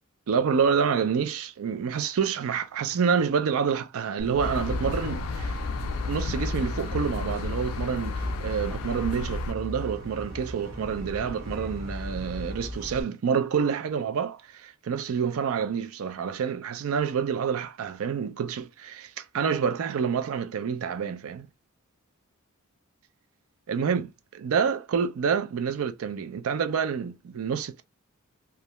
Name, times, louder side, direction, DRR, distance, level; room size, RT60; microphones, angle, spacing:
voice 1, 0.3-5.6 6.0-21.5 23.7-27.8, right 6 dB, 65° right, 0.4 m, -28 dB
sound 1, 4.2-13.0, equal, 45° right, 1.0 m, -36 dB
sound 2, 4.4-9.5, left 4 dB, 70° left, 0.3 m, -33 dB
2.4 x 2.1 x 2.9 m
head